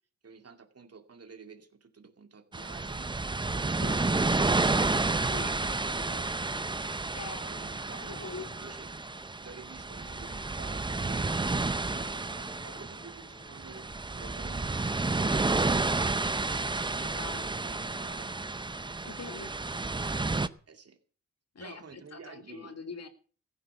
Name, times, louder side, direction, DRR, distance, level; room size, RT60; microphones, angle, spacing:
voice 1, 0.2-3.1 3.5-4.6 5.0-6.3 6.7-8.9 9.4-11.3 11.6-14.7 15.1-18.3 19.0-19.3 20.7-21.0 21.6-22.8, right 5 dB, 50° right, 6 dB, 2.4 m, -50 dB
sound 1, 2.5-20.5, right 3 dB, 15° right, 0.6 m, -31 dB
voice 2, 7.1-8.8 17.0-17.5 19.0-19.9 21.5-23.1, left 4 dB, 50° left, 7 dB, 2.2 m, -44 dB
sound 2, 7.5-16.1, left 3 dB, 25° left, 3.3 m, -59 dB
15.0 x 9.6 x 6.8 m, 0.41 s
wide cardioid pair, 105°, 32 cm